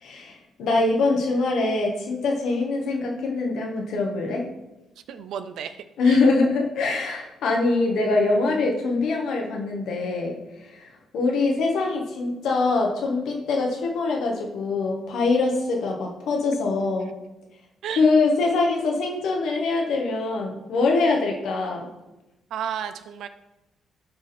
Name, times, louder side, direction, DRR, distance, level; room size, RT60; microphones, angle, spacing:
voice 1, 0.0-4.4 6.0-10.4 10.7-17.1 17.9-21.9, left 3 dB, 60° left, 0 dB, 1.9 m, -23 dB
voice 2, 5.1-5.7 6.0-6.2 17.8-18.0 22.5-23.3, right 8 dB, 65° right, 11 dB, 0.6 m, -32 dB
13.5 x 4.8 x 4.4 m, 0.98 s
hypercardioid pair, 45°, 0 cm